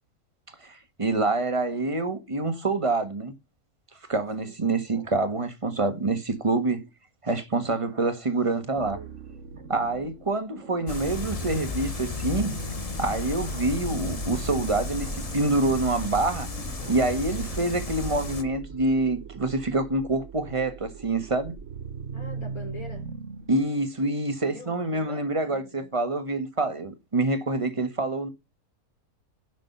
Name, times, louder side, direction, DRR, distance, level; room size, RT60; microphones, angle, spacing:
voice 1, 0.6-3.3 4.1-6.9 7.2-9.0 9.7-12.5 13.0-16.5 16.9-21.5 23.5-28.3, right 2 dB, 20° right, 1.6 m, -26 dB
sound 1, 8.7-24.3, right 5 dB, 50° right, 1.4 m, -41 dB
sound 2, 10.9-18.4, left 3 dB, 25° left, 1.0 m, -33 dB
voice 2, 22.1-23.1 24.5-25.9, left 2 dB, 65° left, 4.0 m, -44 dB
10.5 x 6.3 x 5.5 m
omnidirectional pair, 1.7 m